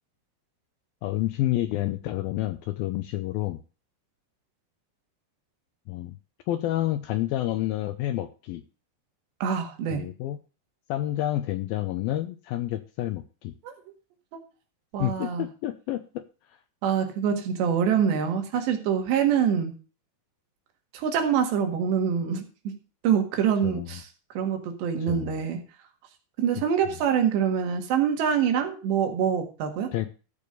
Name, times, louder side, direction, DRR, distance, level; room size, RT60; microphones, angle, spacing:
voice 1, 1.0-3.6 5.9-6.2 6.5-8.6 9.9-10.4 10.9-13.5 15.0-16.3 23.6-24.0 25.1-25.4 29.9-30.1, left 14 dB, 80° left, 10 dB, 2.2 m, -29 dB
voice 2, 9.4-10.0 13.6-13.7 14.9-15.5 16.8-19.8 20.9-22.8 23.0-24.1 24.4-25.6 26.4-29.9, right 8 dB, 80° right, 4 dB, 3.9 m, -25 dB
14.0 x 5.2 x 6.7 m, 0.36 s
omnidirectional pair, 4.9 m